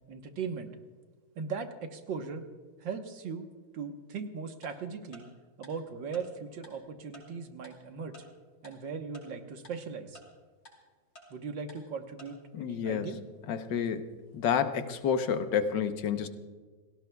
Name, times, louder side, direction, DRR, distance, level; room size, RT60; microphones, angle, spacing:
voice 1, 0.1-0.7 1.4-2.4 2.8-3.4 3.7-5.3 5.6-8.1 8.6-10.2 11.3-13.2, right 5 dB, 80° right, 5 dB, 2.0 m, -38 dB
Tick-tock, 4.6-4.7 5.1-5.2 5.6-5.7 6.1-6.2 6.6-6.7 7.1-7.2 7.6-7.7 8.1-8.2 8.6-8.7 9.1-9.2 9.6-9.7 10.1-10.2 10.6-10.7 11.1-11.2 11.7-11.8 12.2-12.3, left 1 dB, 55° left, 4.2 m, -51 dB
voice 2, 12.5-13.1 13.5-14.1 14.3-16.3, left 7 dB, 75° left, 8 dB, 1.6 m, -29 dB
29.0 x 17.5 x 2.3 m, 1.4 s
omnidirectional pair, 2.0 m